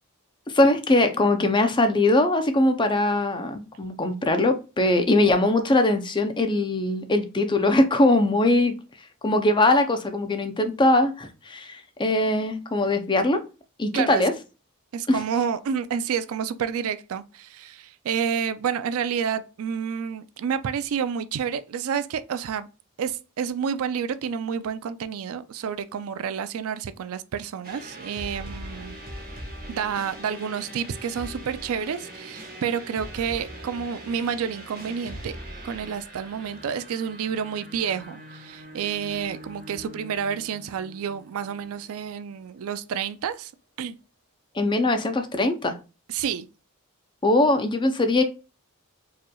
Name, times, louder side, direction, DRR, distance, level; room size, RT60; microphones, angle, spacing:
voice 1, 0.5-8.8 9.2-13.4 13.8-14.3 15.1-15.2 44.6-45.7 47.2-48.2, left 2 dB, 20° left, 0.5 m, -21 dB
voice 2, 14.9-22.7 23.0-29.0 29.7-35.3 35.6-43.5 43.8-44.0 46.1-46.5, right 7 dB, 70° right, 0.4 m, -29 dB
sound 1, 27.6-42.4, right 1 dB, 40° right, 1.1 m, -41 dB
4.8 x 3.0 x 2.3 m
head